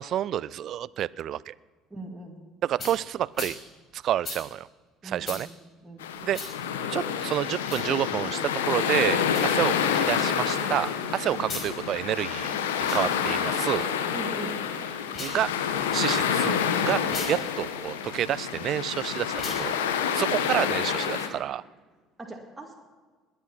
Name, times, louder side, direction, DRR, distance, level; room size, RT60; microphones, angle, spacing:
voice 1, 0.0-1.5 2.6-3.6 3.9-4.7 5.0-5.5 6.2-6.4 6.9-12.5 12.9-13.9 15.2-15.5 15.9-17.0 17.3-19.7 20.1-21.6, right 11 dB, 55° right, 22 dB, 0.3 m, -29 dB
voice 2, 1.9-2.4 5.0-5.5 5.8-6.1 11.3-11.4 14.1-14.6 22.2-22.7, right 2 dB, 15° right, 0 dB, 2.3 m, -39 dB
sound 1, 2.8-3.0 3.3-3.5 4.2-4.4 5.2-5.4 6.3-6.5 7.6-7.9 9.2-9.5 11.4-11.7 12.7-13.0 15.0-15.4 17.0-17.3 19.3-19.6, left 3 dB, 40° left, 5.3 m, -36 dB
sound 2, 6.0-21.3, left 8 dB, 80° left, 1.0 m, -28 dB
20.5 x 8.9 x 5.9 m, 1.4 s
hypercardioid pair, 60°, 0 cm